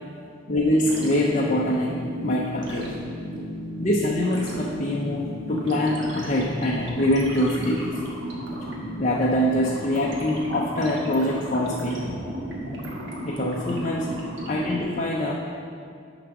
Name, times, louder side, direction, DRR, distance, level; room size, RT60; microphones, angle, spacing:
voice 1, 0.5-1.9 2.2-2.9 3.8-7.9 9.0-12.1 13.2-14.1 14.4-15.3, left 1 dB, 35° left, -3 dB, 0.6 m, -24 dB
sound 1, 0.6-14.8, equal, 60° right, 1.4 m, -34 dB
10.0 x 4.0 x 5.9 m, 2.3 s
head